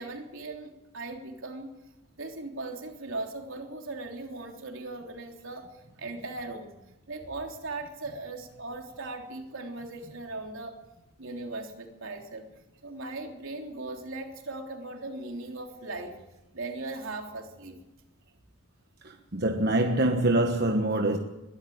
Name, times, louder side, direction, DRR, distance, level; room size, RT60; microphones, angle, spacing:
voice 1, 0.0-1.7 2.1-5.7 6.0-6.7 7.1-10.8 11.2-12.5 12.8-16.1 16.5-17.8, right 2 dB, 75° right, 3.4 m, -38 dB
voice 2, 19.3-21.2, right 1 dB, 50° right, 1.3 m, -24 dB
22.0 x 13.0 x 9.4 m
head